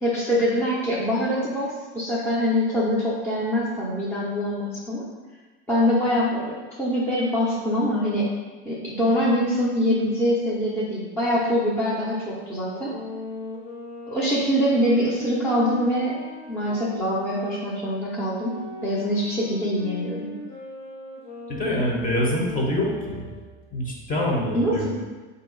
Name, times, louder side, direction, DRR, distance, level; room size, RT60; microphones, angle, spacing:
voice 1, 0.0-5.0 5.7-8.3 8.6-12.9 14.1-16.2 16.5-20.3 24.5-24.9, equal, 5° left, -8 dB, 0.9 m, -24 dB
sound 1, 12.1-17.6 18.2-23.4, left 1 dB, 60° left, 1.1 m, -39 dB
voice 2, 21.5-23.2 23.7-24.9, left 1 dB, 25° left, -2 dB, 1.2 m, -25 dB
4.1 x 2.8 x 4.0 m, 1.3 s
supercardioid pair, 95°, 31 cm